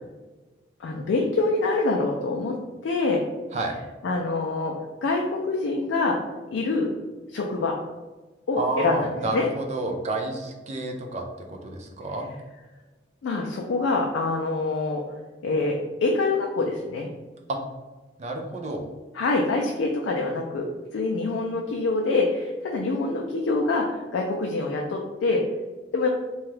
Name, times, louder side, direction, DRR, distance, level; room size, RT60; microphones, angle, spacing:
voice 1, 0.8-2.6 2.8-3.2 4.0-4.8 5.0-6.2 6.5-6.9 7.3-7.8 8.5-9.5 13.2-15.0 15.4-17.1 19.1-20.7 20.9-25.4 25.9-26.1, left 3 dB, 85° left, 0 dB, 0.3 m, -25 dB
voice 2, 8.6-12.3 17.5-17.6 18.2-18.8, right 2 dB, 35° right, 2 dB, 0.4 m, -30 dB
2.8 x 2.3 x 3.1 m, 1.2 s
head